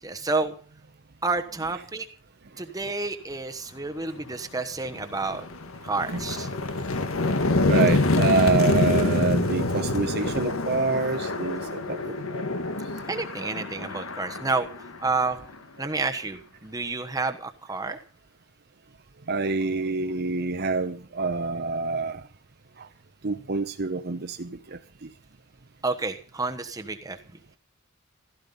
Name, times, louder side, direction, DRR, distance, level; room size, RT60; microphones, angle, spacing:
voice 1, 0.0-0.5 1.2-2.1 2.6-5.5 5.8-6.5 13.1-14.7 15.0-15.4 15.8-18.0 25.8-27.2, right 3 dB, 15° right, 6 dB, 1.1 m, -29 dB
sound 1, 4.2-4.3 4.8-15.5, left 2 dB, 80° left, 1.6 m, -26 dB
voice 2, 7.7-12.4 13.4-13.5 19.3-22.2 23.2-24.5, right 3 dB, 50° right, 7 dB, 0.9 m, -27 dB
16.0 x 14.0 x 5.4 m, 0.40 s
head